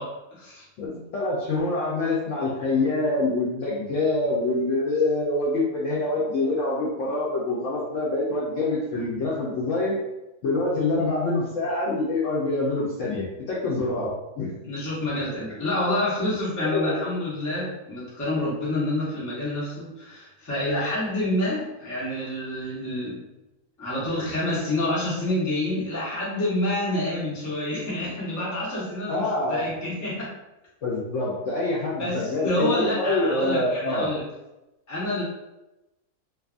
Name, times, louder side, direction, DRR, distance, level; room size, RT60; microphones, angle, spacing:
voice 1, 0.0-0.7 14.6-23.2 23.8-30.3 32.0-34.3 34.9-35.2, left 1 dB, 15° left, -8 dB, 0.6 m, -28 dB
voice 2, 0.8-10.1 10.4-14.5 16.6-17.1 29.1-29.7 30.8-34.1, left 2 dB, 65° left, -6 dB, 0.8 m, -25 dB
2.6 x 2.3 x 2.4 m, 0.96 s
omnidirectional pair, 1.6 m